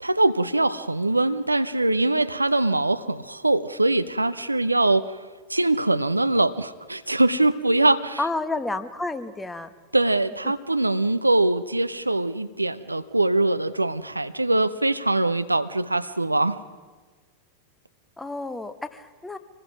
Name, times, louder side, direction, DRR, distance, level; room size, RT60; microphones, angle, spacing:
voice 1, 0.0-5.0 5.5-8.2 9.9-16.6, right 2 dB, 85° right, 12 dB, 0.7 m, -22 dB
voice 2, 8.2-9.7 18.2-19.4, left 2 dB, 10° left, 11 dB, 1.2 m, -30 dB
25.5 x 20.5 x 6.0 m, 1.4 s
figure-of-eight pair, 90°, 0 cm